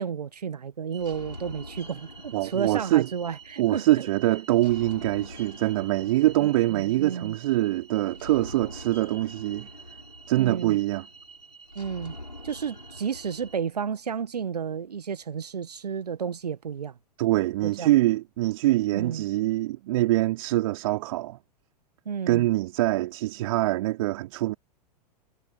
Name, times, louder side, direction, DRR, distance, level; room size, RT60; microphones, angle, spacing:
voice 1, 0.0-4.1 6.4-7.3 10.3-10.8 11.7-12.1 12.4-17.0 17.6-17.9 18.9-19.2 22.0-22.5, right 7 dB, 70° right, 1.5 m, -32 dB
sound 1, 0.9-13.6, equal, 90° left, 6.4 m, -44 dB
voice 2, 2.3-3.1 3.6-9.7 10.3-11.1 17.2-21.4 22.3-24.5, right 16 dB, 55° right, 3.5 m, -24 dB
figure-of-eight pair, 95°, 21 cm